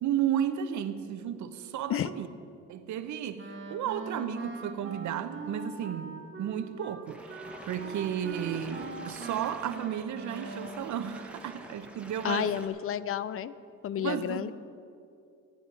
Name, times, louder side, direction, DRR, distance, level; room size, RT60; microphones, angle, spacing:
voice 1, 0.0-2.3 2.7-12.5 14.0-14.5, right 9 dB, 70° right, 0.8 m, -33 dB
Wind instrument woodwind instrument, 3.4-10.9, right 4 dB, 40° right, 1.2 m, -42 dB
sound 1, 7.1-12.7, right 1 dB, 5° right, 1.4 m, -47 dB
voice 2, 12.2-13.5 13.8-14.5, left 10 dB, 45° left, 0.5 m, -31 dB
15.0 x 9.3 x 4.7 m
cardioid pair, 90°, 30 cm